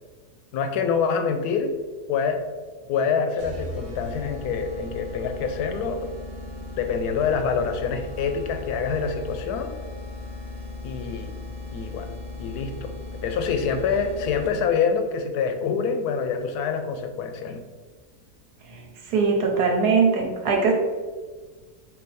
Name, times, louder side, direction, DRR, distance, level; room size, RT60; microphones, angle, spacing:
voice 1, 0.5-1.7 2.1-2.4 2.9-6.1 6.8-9.7 10.8-11.4 11.7-12.1 12.4-12.9 13.2-17.6, left 6 dB, 80° left, 6 dB, 1.1 m, -26 dB
sound 1, 3.4-14.8, left 2 dB, 55° right, 0.8 m, -37 dB
voice 2, 19.1-20.7, right 4 dB, 90° right, 1 dB, 1.4 m, -21 dB
4.6 x 2.8 x 4.1 m, 1.4 s
omnidirectional pair, 1.7 m